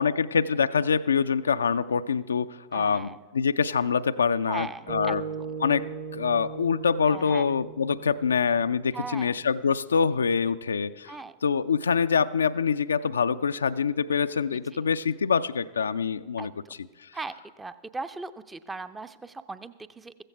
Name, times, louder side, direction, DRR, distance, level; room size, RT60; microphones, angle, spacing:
voice 1, 0.0-5.2 5.6-16.5 17.0-17.1, left 6 dB, 70° left, 12 dB, 0.3 m, -25 dB
voice 2, 2.7-3.2 4.5-5.5 7.1-7.5 8.9-9.4 11.1-11.4 14.5-14.8 16.4-16.7 17.1-20.2, right 3 dB, 10° right, 12 dB, 0.5 m, -39 dB
sound 1, 4.9-9.3, right 6 dB, 35° right, 0.9 m, -38 dB
15.0 x 15.0 x 3.3 m, 1.5 s
figure-of-eight pair, 90°, 0 cm